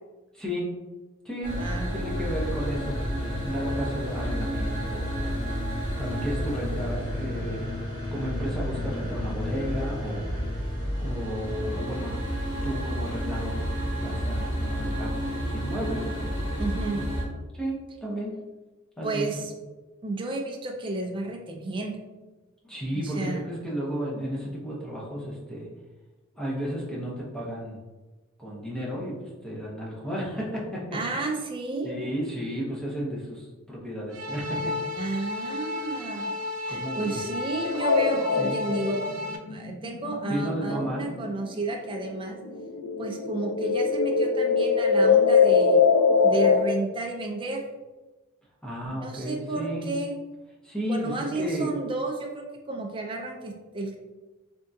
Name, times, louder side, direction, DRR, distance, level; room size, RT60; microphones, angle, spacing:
voice 1, 0.3-0.7 1.2-1.6 1.9-3.0 3.4-5.4 6.0-7.6 8.1-10.4 11.0-12.2 12.6-16.3 16.9-17.0 17.5-18.3 19.0-19.3 22.6-25.7 26.3-27.8 28.4-29.2 29.4-30.8 31.1-31.2 31.8-34.7 36.7-37.2 38.4-38.6 40.3-41.1 48.6-49.9 50.6-51.7, equal, 5° left, -5 dB, 0.7 m, -33 dB
sound 1, 1.4-17.2, equal, 25° left, 1.3 m, -30 dB
voice 2, 1.6-1.9 16.6-17.1 19.0-19.5 20.0-22.0 22.9-23.4 30.9-31.9 35.0-36.3 36.6-39.1 39.5-42.4 43.0-45.8 46.2-47.6 48.9-50.1 50.9-54.0, right 2 dB, 25° right, 1 dB, 0.4 m, -32 dB
sound 2, 34.1-39.4, left 2 dB, 80° right, 0.5 m, -33 dB
sound 3, 37.6-41.7 42.0-46.6, left 5 dB, 75° left, 0.4 m, -22 dB
3.6 x 3.4 x 2.7 m, 1.2 s
head